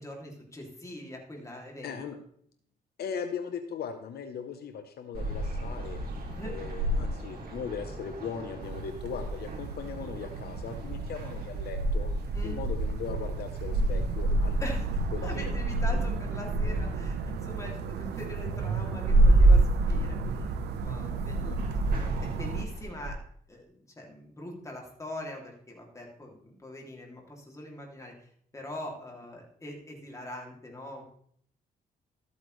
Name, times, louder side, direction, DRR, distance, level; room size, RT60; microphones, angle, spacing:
voice 1, 0.0-2.0 6.3-6.5 12.3-12.6 14.6-14.9 15.2-21.6 22.2-23.2 23.5-31.0, left 1 dB, 20° left, 0 dB, 2.7 m, -42 dB
voice 2, 1.8-2.1 3.0-6.0 6.4-12.1 12.4-14.6 15.1-15.4 21.4-21.6, left 7 dB, 70° left, 6 dB, 1.0 m, -38 dB
sound 1, 5.1-23.1, right 1 dB, 60° right, 2.9 m, -29 dB
sound 2, 8.6-22.7, right 6 dB, 85° right, 0.9 m, -36 dB
13.5 x 8.4 x 3.2 m, 0.64 s
cardioid pair, 100°, 17 cm